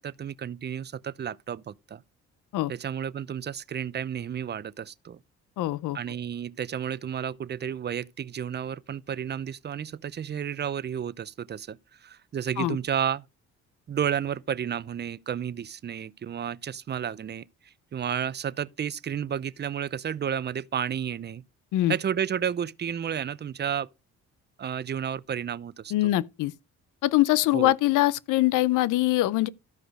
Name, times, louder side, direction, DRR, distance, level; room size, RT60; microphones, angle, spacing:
voice 1, 0.0-2.0 2.7-5.2 5.9-13.2 13.9-17.4 17.9-21.4 21.9-23.9 24.6-25.9 27.5-27.7, right 8 dB, 35° right, 0.6 m, -32 dB
voice 2, 5.6-6.0 12.6-12.8 21.7-21.9 25.9-26.5 27.0-29.5, left 16 dB, 90° left, 0.6 m, -23 dB
13.5 x 5.1 x 4.8 m
cardioid pair, 90°, 30 cm